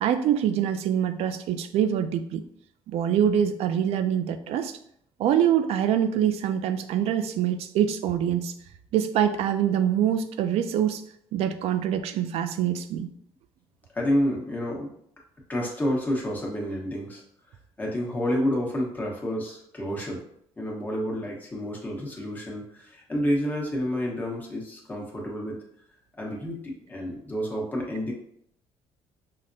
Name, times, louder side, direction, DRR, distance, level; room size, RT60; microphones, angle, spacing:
voice 1, 0.0-2.4 2.9-4.8 5.2-8.5 8.9-11.0 11.3-13.1, right 9 dB, 70° right, 10 dB, 0.4 m, -24 dB
voice 2, 13.9-14.9 15.5-17.2 17.8-20.2 20.6-25.6 26.2-28.1, equal, 15° left, -2 dB, 1.0 m, -29 dB
5.6 x 2.1 x 2.6 m, 0.69 s
cardioid pair, 110°, 11 cm